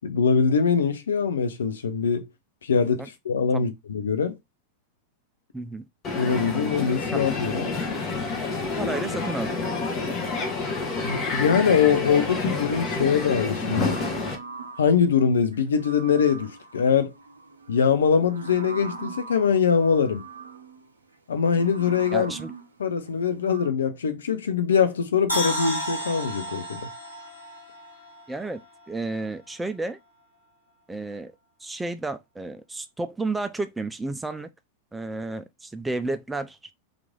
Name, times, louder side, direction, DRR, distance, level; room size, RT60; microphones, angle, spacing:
voice 1, 0.0-2.3 2.6-4.3 6.2-7.7 11.0-14.0 14.8-17.1 17.7-20.2 21.3-22.3 22.8-26.9, left 6 dB, 65° left, 0.6 m, -23 dB
voice 2, 5.5-5.9 7.1-7.2 8.8-9.8 22.1-22.5 28.3-28.6 28.9-30.0 30.9-31.3 31.6-34.5 34.9-36.6, right 2 dB, 10° right, 0.3 m, -31 dB
Crowd, 6.0-14.4, left 3 dB, 30° left, 1.0 m, -28 dB
sound 1, 10.7-12.2 12.6-15.0 15.5-23.7, right 5 dB, 75° right, 0.6 m, -42 dB
sound 2, 25.3-28.5 28.8-28.9, equal, 85° left, 1.2 m, -32 dB
3.0 x 2.5 x 3.6 m
figure-of-eight pair, 90°, 0 cm